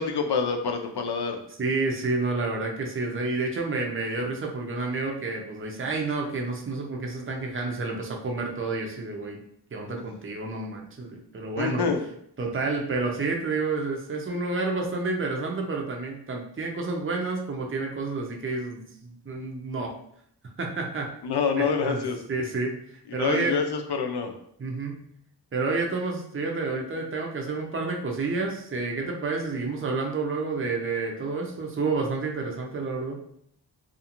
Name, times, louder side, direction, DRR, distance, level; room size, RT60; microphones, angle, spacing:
voice 1, 0.0-1.4 11.6-12.0 21.2-22.2 23.2-24.3, left 5 dB, 70° left, 5 dB, 0.5 m, -26 dB
voice 2, 1.6-9.4 9.7-11.8 12.4-19.9 20.6-21.1 21.6-22.0 22.3-23.6 24.6-25.0 25.5-33.2, right 3 dB, 30° right, 1 dB, 0.6 m, -29 dB
2.5 x 2.4 x 2.9 m, 0.69 s
cardioid pair, 40°, 42 cm